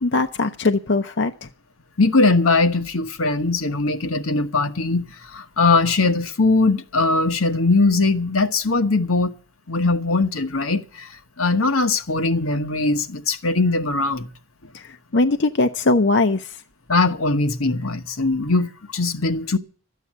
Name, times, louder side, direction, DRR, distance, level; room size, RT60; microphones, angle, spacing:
voice 1, 0.0-1.5 14.7-16.6, left 3 dB, 55° left, 0.6 m, -21 dB
voice 2, 2.0-9.3 9.7-14.3 16.9-19.6, left 3 dB, 85° left, 1.3 m, -20 dB
13.0 x 8.2 x 9.2 m
head